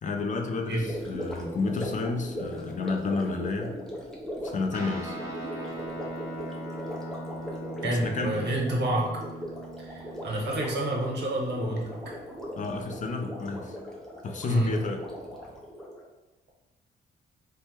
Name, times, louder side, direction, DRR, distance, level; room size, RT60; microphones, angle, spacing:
voice 1, 0.0-3.8 4.4-5.2 7.8-8.5 12.6-13.8 14.2-15.0, left 3 dB, 40° left, 4 dB, 0.4 m, -31 dB
Gurgling, 0.8-16.0, equal, ahead, 0.7 m, -39 dB
Guitar, 4.7-12.4, right 1 dB, 15° right, 1.0 m, -40 dB
voice 2, 7.8-9.2 9.8-11.9 14.5-14.7, right 1 dB, 60° right, -2 dB, 0.9 m, -28 dB
3.3 x 2.1 x 2.8 m, 1.1 s
cardioid pair, 90°, 20 cm